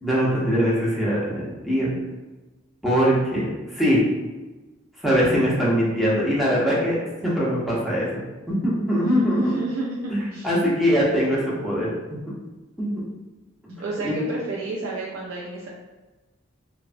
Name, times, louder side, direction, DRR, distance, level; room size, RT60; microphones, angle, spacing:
voice 1, 0.0-1.9 2.8-4.0 5.0-7.0 7.2-8.1 8.5-9.5 10.1-12.2 12.8-13.0 14.0-14.2, equal, ahead, -7 dB, 0.6 m, -22 dB
voice 2, 9.1-10.5 13.8-15.7, right 2 dB, 70° right, -5 dB, 0.4 m, -31 dB
3.1 x 2.1 x 2.5 m, 1.2 s
head